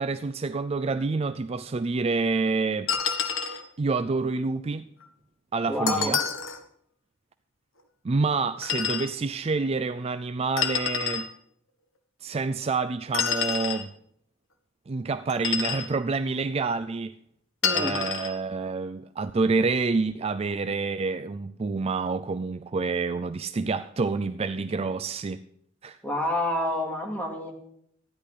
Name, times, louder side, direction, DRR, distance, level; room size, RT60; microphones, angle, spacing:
voice 1, 0.0-2.9 3.8-4.9 5.5-6.2 8.0-11.3 12.2-13.9 14.9-17.1 17.7-25.4 25.8-26.0, right 4 dB, 30° right, 0.4 m, -28 dB
sound 1, 2.9-3.6 5.9-6.6 8.6-9.1 10.6-11.3 13.1-13.8 15.3-15.9 17.6-18.3, left 6 dB, 85° left, 1.3 m, -28 dB
voice 2, 5.7-6.1 17.6-18.0 26.0-27.5, left 1 dB, 10° left, 2.4 m, -28 dB
15.0 x 10.5 x 4.9 m
head